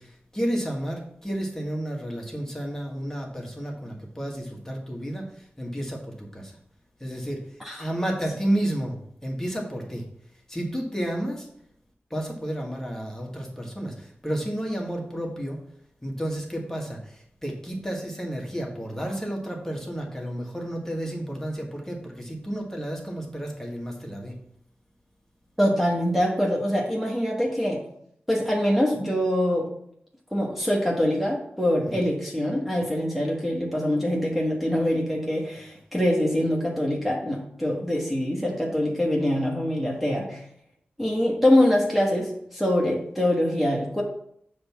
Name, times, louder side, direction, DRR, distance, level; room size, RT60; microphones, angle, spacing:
voice 1, 0.0-6.6 7.0-7.5 7.8-10.0 10.5-11.5 12.1-15.6 16.0-24.3 31.8-32.0, right 1 dB, 10° left, 0 dB, 1.6 m, -31 dB
voice 2, 25.6-27.8 28.3-29.7 30.3-40.4 41.0-44.0, left 1 dB, 5° right, -2 dB, 1.5 m, -24 dB
6.5 x 3.5 x 6.0 m, 0.69 s
cardioid pair, 55°, 4 cm